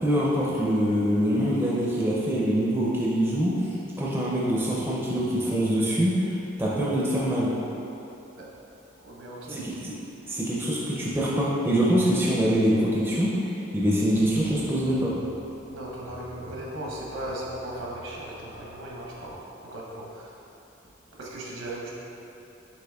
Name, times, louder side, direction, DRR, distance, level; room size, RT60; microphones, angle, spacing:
voice 1, 0.0-6.3 6.6-7.5 9.5-9.9 10.3-15.1, equal, 10° right, -6 dB, 0.4 m, -24 dB
voice 2, 9.0-9.7 15.7-20.4 21.2-21.9, right 1 dB, 75° right, -4 dB, 0.8 m, -37 dB
sound 1, 14.1-19.4, left 1 dB, 60° left, 1.1 m, -49 dB
7.7 x 2.9 x 2.3 m, 3.0 s
head